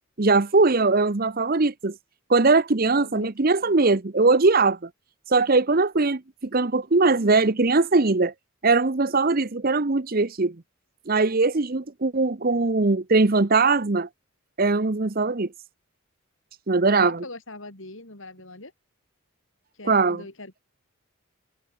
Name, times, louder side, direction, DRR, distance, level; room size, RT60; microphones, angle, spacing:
voice 1, 0.2-2.0 2.3-4.9 5.3-8.3 8.6-10.6 11.1-14.1 14.6-15.5 16.7-17.2 19.9-20.2, right 3 dB, 40° right, 0.8 m, -21 dB
voice 2, 2.9-3.3 17.0-18.7 19.7-20.6, left 2 dB, 60° left, 4.1 m, -42 dB
head